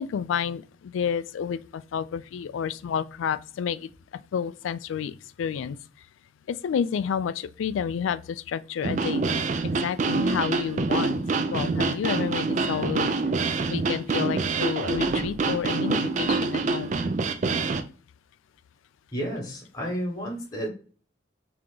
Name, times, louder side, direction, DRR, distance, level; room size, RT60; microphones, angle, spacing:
voice 1, 0.0-3.9 4.3-5.8 6.5-11.2 11.5-13.1 13.7-16.9, left 7 dB, 90° left, 0.3 m, -30 dB
sound 1, 8.8-17.8, right 3 dB, 40° right, 0.3 m, -26 dB
voice 2, 19.1-20.7, equal, 20° left, 1.1 m, -31 dB
3.6 x 2.8 x 3.7 m
head